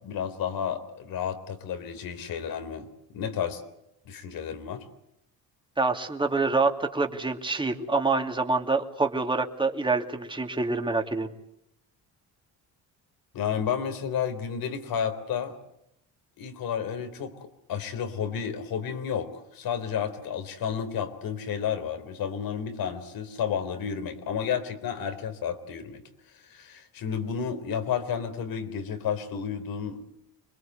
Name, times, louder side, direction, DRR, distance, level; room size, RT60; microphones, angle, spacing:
voice 1, 0.0-3.6 4.1-4.9 13.3-15.6 16.4-26.0 26.3-30.0, left 7 dB, 70° left, 9 dB, 3.8 m, -31 dB
voice 2, 5.8-11.3, right 3 dB, 15° right, 4 dB, 2.7 m, -26 dB
26.5 x 21.5 x 8.1 m, 0.79 s
cardioid pair, 110°, 36 cm